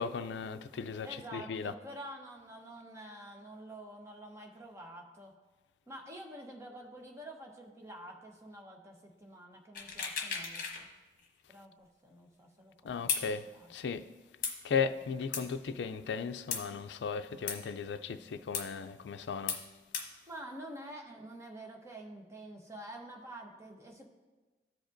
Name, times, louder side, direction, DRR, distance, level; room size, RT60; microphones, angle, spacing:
voice 1, 0.0-1.7 12.8-14.1 14.6-19.6, left 6 dB, 85° left, 0.4 m, -36 dB
voice 2, 1.0-5.3 5.9-10.9 11.5-13.7 20.3-24.1, right 1 dB, 15° right, 0.9 m, -48 dB
sound 1, 9.7-10.8 11.2-11.3 13.1-13.3 14.4-14.5 15.3-15.4 16.5-16.6 17.5-17.6 18.5-18.7 19.5-19.6 19.9-20.1, left 6 dB, 50° left, 1.1 m, -34 dB
15.0 x 5.0 x 2.6 m
head